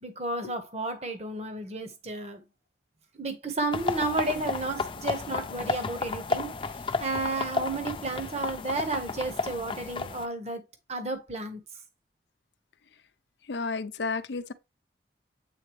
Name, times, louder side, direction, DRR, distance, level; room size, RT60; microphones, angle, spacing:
voice 1, 0.0-2.4 3.1-10.6 10.9-11.6, right 2 dB, 35° right, 1.1 m, -32 dB
sound 1, 3.7-10.3, left 4 dB, 30° left, 0.4 m, -33 dB
voice 2, 13.5-14.5, left 4 dB, 75° left, 0.6 m, -31 dB
7.8 x 3.9 x 3.1 m
head